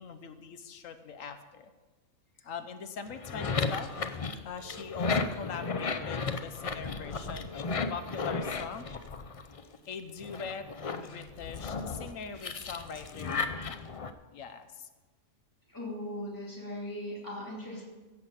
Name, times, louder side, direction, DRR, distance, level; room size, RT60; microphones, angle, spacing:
voice 1, 0.0-1.7 2.4-8.9 9.9-13.8 14.3-14.9, left 6 dB, 85° left, 9 dB, 1.3 m, -42 dB
sound 1, 3.1-9.8 10.2-14.1, left 4 dB, 40° left, 0.5 m, -34 dB
voice 2, 15.7-17.8, left 1 dB, 15° left, -5 dB, 3.0 m, -38 dB
16.0 x 5.9 x 7.4 m, 1.2 s
omnidirectional pair, 1.3 m